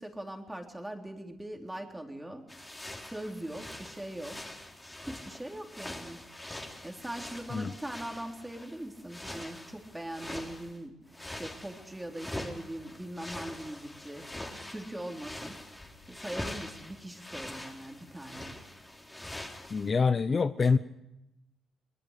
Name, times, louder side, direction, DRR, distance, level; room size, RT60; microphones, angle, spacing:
voice 1, 0.0-2.5 3.0-4.4 5.1-6.2 6.8-11.0 11.3-14.2 14.7-15.6 16.1-18.7, right 1 dB, 10° right, 2 dB, 3.7 m, -41 dB
sound 1, 2.5-10.8 11.1-19.9, left 1 dB, 15° left, 4.0 m, -44 dB
voice 2, 19.7-20.8, left 5 dB, 45° left, 12 dB, 0.8 m, -25 dB
23.5 x 20.0 x 6.7 m, 0.90 s
supercardioid pair, 60°, 0 cm